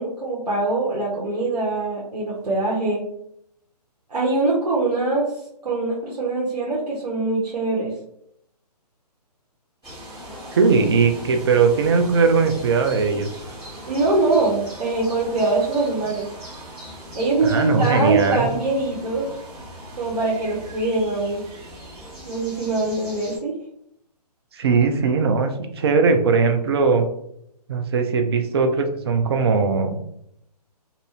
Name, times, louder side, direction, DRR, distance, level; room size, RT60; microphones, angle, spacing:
voice 1, 0.0-3.0 4.1-5.3 5.6-7.9 13.9-16.2 17.1-19.3 20.0-21.4 22.2-23.5, right 2 dB, 70° right, -6 dB, 0.9 m, -23 dB
sound 1, 9.8-23.4, equal, 20° right, 1.2 m, -39 dB
voice 2, 10.5-13.3 17.4-18.5 24.5-27.1 27.7-30.0, right 5 dB, 40° right, 6 dB, 0.4 m, -19 dB
2.6 x 2.4 x 2.6 m, 0.73 s
figure-of-eight pair, 140°, 21 cm